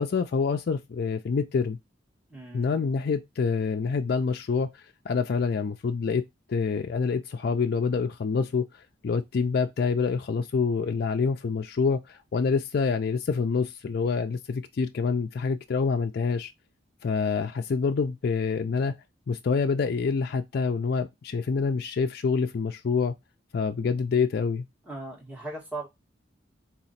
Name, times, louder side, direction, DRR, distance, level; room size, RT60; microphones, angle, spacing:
voice 1, 0.0-1.8 2.5-6.2 6.5-8.7 9.0-16.5 17.0-19.0 19.3-23.1 23.5-24.6, left 5 dB, 55° left, 0.4 m, -26 dB
voice 2, 2.3-2.9 24.8-25.9, right 2 dB, 5° right, 1.7 m, -38 dB
3.9 x 3.0 x 4.1 m
head